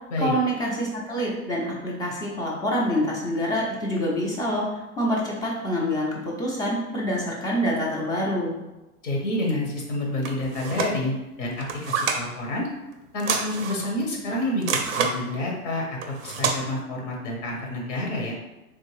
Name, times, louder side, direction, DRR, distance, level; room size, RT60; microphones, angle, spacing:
voice 1, 0.2-4.6 5.0-8.6, equal, 10° left, -3 dB, 0.4 m, -26 dB
voice 2, 9.0-12.7 13.1-18.3, left 1 dB, 55° left, -1 dB, 1.0 m, -28 dB
sound 1, 10.2-10.9 11.6-12.2 13.2-13.9 14.6-15.2 16.0-16.6, right 6 dB, 45° right, 0.5 m, -27 dB
3.6 x 2.4 x 3.1 m, 1.0 s
figure-of-eight pair, 95°, 44 cm